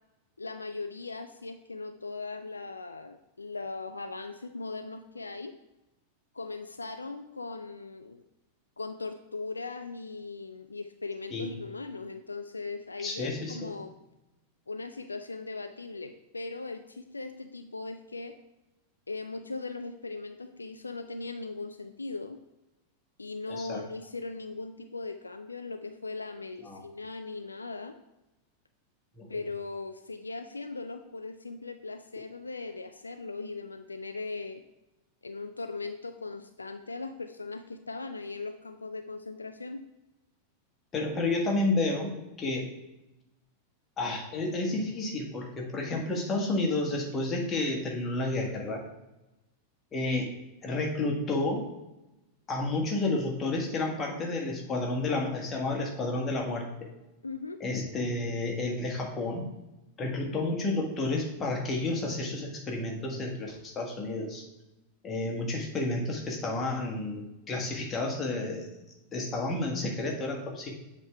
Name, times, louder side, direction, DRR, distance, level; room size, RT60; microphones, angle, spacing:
voice 1, 0.4-5.5 6.3-8.2 8.8-13.9 14.7-18.4 19.1-22.4 23.2-28.0 29.3-34.6 35.2-39.8 57.2-57.6, left 3 dB, 80° left, 8 dB, 0.3 m, -39 dB
voice 2, 13.0-13.7 23.5-23.8 26.6-26.8 29.2-29.4 40.9-42.1 42.4-42.7 44.0-48.8 49.9-50.3 50.6-51.6 52.5-56.7 57.6-59.5 60.0-64.4 65.0-68.7 69.1-70.7, left 2 dB, 25° left, 0 dB, 1.5 m, -31 dB
7.6 x 3.6 x 4.5 m, 0.97 s
figure-of-eight pair, 90°, 0 cm